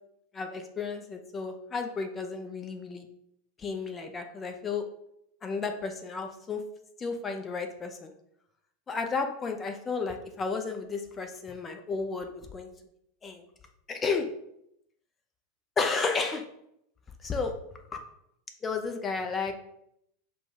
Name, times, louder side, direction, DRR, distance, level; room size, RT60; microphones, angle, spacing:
voice 1, 0.3-3.1 3.6-4.8 5.4-6.6 7.0-8.1 8.9-12.7 13.2-13.4 13.9-14.3 15.8-16.4 17.2-17.5 18.6-19.5, left 4 dB, 25° left, 5 dB, 0.6 m, -32 dB
4.8 x 2.3 x 3.9 m, 0.75 s
figure-of-eight pair, 85°, 0 cm